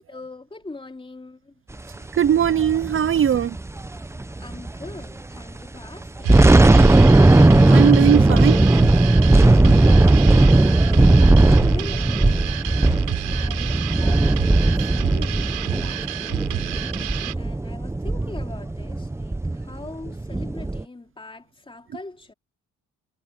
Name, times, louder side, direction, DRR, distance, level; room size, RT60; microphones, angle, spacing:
voice 1, 0.1-1.5 4.4-7.1 10.7-10.8 11.2-12.3 13.3-16.5 17.4-22.3, left 2 dB, 15° left, 3.1 m, -41 dB
voice 2, 2.1-3.6 7.7-8.6 15.1-15.2, right 9 dB, 45° right, 0.7 m, -19 dB
sound 1, 2.2-5.1 5.4-5.5 6.0-20.8, right 2 dB, 10° right, 0.8 m, -17 dB
sound 2, 6.2-17.3, right 14 dB, 90° right, 3.9 m, -31 dB
cardioid pair, 90°, 30 cm